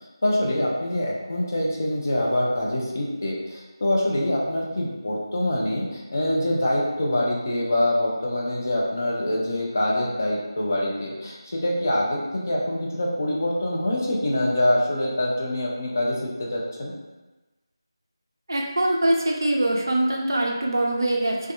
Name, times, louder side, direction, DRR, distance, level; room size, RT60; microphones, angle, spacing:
voice 1, 0.2-16.9, left 1 dB, 40° left, -4 dB, 0.4 m, -25 dB
voice 2, 18.5-21.5, right 1 dB, 50° right, 0 dB, 0.4 m, -23 dB
2.7 x 2.3 x 2.2 m, 1.1 s
figure-of-eight pair, 165°, 3 cm